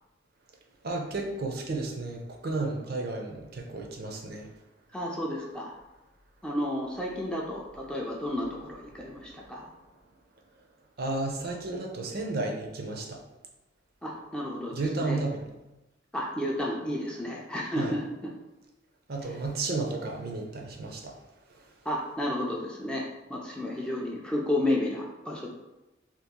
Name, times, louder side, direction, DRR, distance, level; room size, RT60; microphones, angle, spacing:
voice 1, 0.8-4.5 11.0-13.2 14.7-15.4 17.8-17.9 19.1-21.1, right 3 dB, 50° right, 1 dB, 0.5 m, -32 dB
voice 2, 4.9-5.7 6.4-9.7 14.0-15.2 16.1-18.3 19.2-19.4 21.9-25.5, left 1 dB, 5° left, -3 dB, 0.3 m, -32 dB
2.9 x 2.4 x 3.6 m, 1.0 s
head